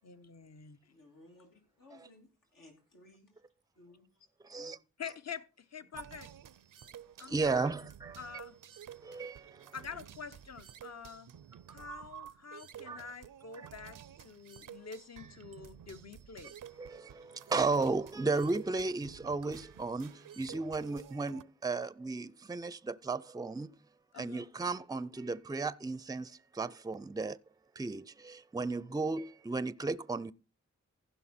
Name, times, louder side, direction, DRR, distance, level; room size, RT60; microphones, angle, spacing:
voice 1, 0.0-0.8 5.0-6.3 7.2-7.7 8.2-8.6 9.7-11.3 11.7-16.6 24.1-24.4, left 6 dB, 55° left, 0.9 m, -46 dB
voice 2, 0.9-3.4 3.8-4.3 4.5-4.7, left 2 dB, 85° left, 2.7 m, -59 dB
sound 1, 5.9-21.4, right 9 dB, 75° right, 0.5 m, -52 dB
voice 3, 7.3-8.2 9.0-9.7 12.9-13.0 16.8-23.7 24.2-27.4 27.8-30.3, right 3 dB, 10° right, 0.4 m, -34 dB
15.5 x 5.6 x 4.3 m
cardioid pair, 50°, 32 cm